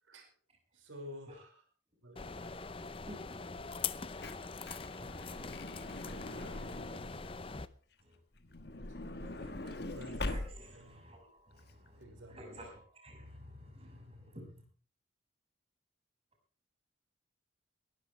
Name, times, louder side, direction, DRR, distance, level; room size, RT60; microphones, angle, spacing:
voice 1, 0.7-1.7 2.0-2.5 4.9-5.5 8.9-10.4 10.7-11.1 11.9-12.8, equal, 85° right, 4 dB, 5.4 m, -54 dB
sound 1, 2.2-7.7, left 5 dB, 30° left, 0.6 m, -42 dB
voice 2, 3.0-3.4 5.0-5.4 5.9-6.9 8.0-8.1 9.2-9.8 10.3-12.0 12.3-14.6, equal, 30° right, 2 dB, 6.4 m, -53 dB
Truck / Door, 4.0-7.3 8.3-10.9 11.6-11.7 11.9-12.0, left 2 dB, 55° left, 1.5 m, -42 dB
22.5 x 13.0 x 3.3 m, 0.40 s
head